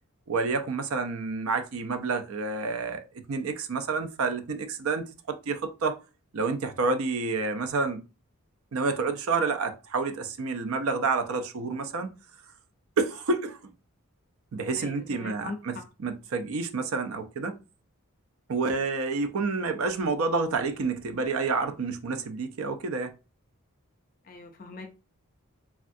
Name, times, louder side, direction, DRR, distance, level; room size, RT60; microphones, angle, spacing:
voice 1, 0.3-3.0 3.3-5.0 5.5-6.0 6.3-8.0 8.7-12.1 13.0-13.7 14.5-15.8 16.0-17.6 18.5-23.1, right 4 dB, 75° right, 0.5 m, -29 dB
voice 2, 14.7-15.6 24.2-24.9, left 3 dB, 40° left, 0.4 m, -41 dB
3.3 x 2.3 x 2.6 m
head